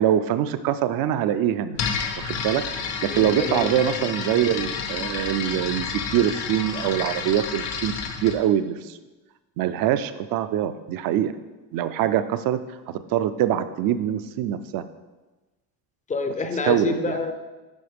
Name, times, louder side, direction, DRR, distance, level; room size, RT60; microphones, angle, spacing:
voice 1, 0.0-1.8 2.2-2.6 3.0-7.9 8.2-9.0 9.6-11.3 11.7-12.6 13.1-14.8 16.6-17.2, right 10 dB, 55° right, 12 dB, 0.5 m, -23 dB
sound 1, 1.7-8.4, left 6 dB, 85° left, 1.0 m, -30 dB
voice 2, 3.1-3.7 16.1-17.3, left 3 dB, 20° left, 7 dB, 0.4 m, -27 dB
10.5 x 3.9 x 3.5 m, 1.2 s
cardioid pair, 130°, 42 cm